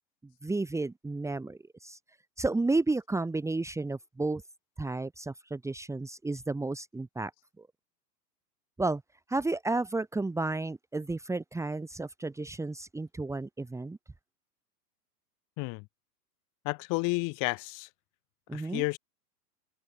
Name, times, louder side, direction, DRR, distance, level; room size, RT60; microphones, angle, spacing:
voice 1, 0.4-2.0 2.4-4.4 4.8-7.3 7.6-7.7 8.8-9.0 9.3-14.0 18.5-18.8, right 2 dB, 5° right, 2.7 m, -32 dB
voice 2, 16.6-17.9 18.5-19.0, left 27 dB, 40° left, 5.9 m, -31 dB
open air
hypercardioid pair, 125°, 49 cm